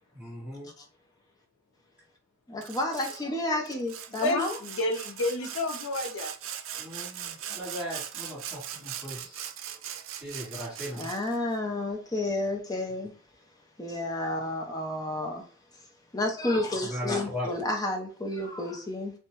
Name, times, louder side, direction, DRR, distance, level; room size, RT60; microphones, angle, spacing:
voice 1, 0.1-0.7 6.8-9.4 10.2-11.3 16.9-17.5, equal, 5° right, 1.4 m, -37 dB
voice 2, 2.5-4.6 10.9-13.1 13.8-15.4 16.1-19.1, left 1 dB, 20° left, 0.6 m, -31 dB
Sawing, 2.6-3.2 3.7-11.4, right 10 dB, 75° right, 0.3 m, -40 dB
voice 3, 4.1-6.3, left 2 dB, 85° left, 0.6 m, -30 dB
2.8 x 2.1 x 3.0 m
head